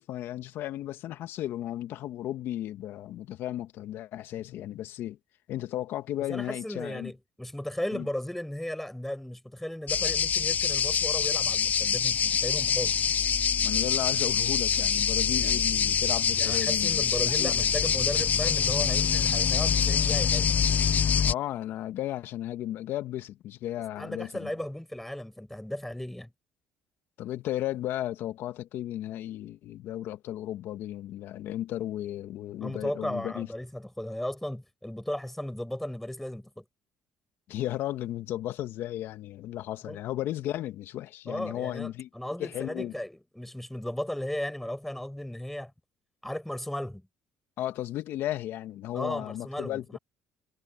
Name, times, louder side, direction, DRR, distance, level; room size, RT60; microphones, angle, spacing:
voice 1, 0.0-5.2 5.5-7.1 7.9-8.1 13.6-17.7 21.2-24.5 27.2-33.5 37.5-42.1 42.4-42.9 47.6-50.0, left 13 dB, 70° left, 1.7 m, -34 dB
voice 2, 6.3-12.9 15.4-15.7 16.4-20.6 24.0-26.3 32.6-36.6 39.9-40.0 41.3-45.7 46.2-47.0 48.9-50.0, left 1 dB, 5° left, 7.0 m, -35 dB
sound 1, 9.9-21.3, left 7 dB, 40° left, 0.5 m, -25 dB
supercardioid pair, 75°, 4 cm